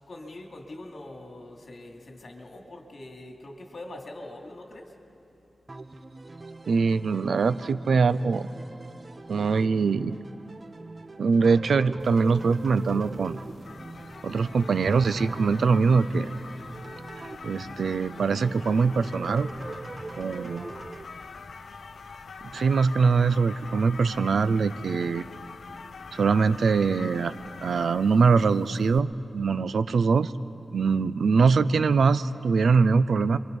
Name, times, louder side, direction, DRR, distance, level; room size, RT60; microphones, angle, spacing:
voice 1, 0.1-4.9, left 1 dB, 55° left, 1 dB, 2.6 m, -43 dB
sound 1, 5.7-21.0, right 2 dB, 30° right, 0.8 m, -43 dB
voice 2, 6.7-8.5 9.3-10.2 11.2-13.4 14.2-16.3 17.4-19.5 20.2-20.7 22.5-25.2 26.1-30.3 30.7-33.4, right 5 dB, 80° right, 14 dB, 0.6 m, -23 dB
sound 2, 12.0-29.0, left 4 dB, 70° left, 0.8 m, -44 dB
29.0 x 24.0 x 5.4 m, 2.9 s
wide cardioid pair, 115°, 0 cm